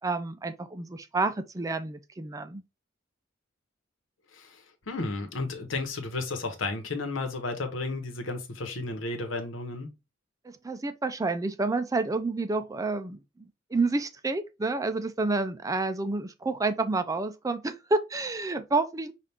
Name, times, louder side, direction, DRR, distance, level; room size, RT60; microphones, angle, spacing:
voice 1, 0.0-2.6 10.4-19.1, right 3 dB, 15° right, 0.4 m, -29 dB
voice 2, 4.3-9.9, left 3 dB, 90° left, 1.0 m, -33 dB
5.7 x 2.5 x 3.4 m
head